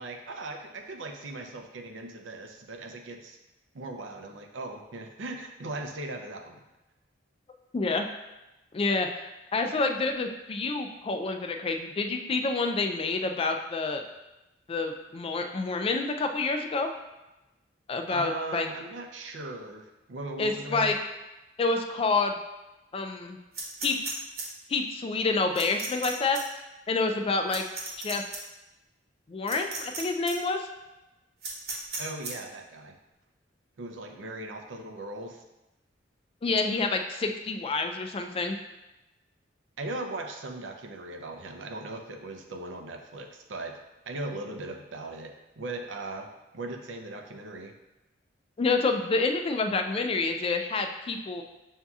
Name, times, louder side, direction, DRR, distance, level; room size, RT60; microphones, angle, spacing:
voice 1, 0.0-3.4 3.7-6.6 18.1-20.9 32.0-33.0 33.8-35.4 39.8-46.3 46.5-47.7, right 2 dB, 75° right, 4 dB, 0.5 m, -38 dB
voice 2, 7.7-8.0 8.7-14.0 14.7-16.9 17.9-18.7 20.4-20.9 21.6-22.4 22.9-23.4 23.8-24.0 24.7-26.4 26.9-27.6 28.0-28.2 29.3-30.7 36.4-38.6 48.6-51.4, left 3 dB, 30° left, 5 dB, 0.3 m, -28 dB
sound 1, 23.5-24.4 25.6-26.1 26.3-26.4 27.5-28.4 29.5-30.0 30.3-30.4 31.4-32.3, right 4 dB, 60° right, 1.0 m, -35 dB
7.1 x 2.7 x 2.3 m, 1.0 s
head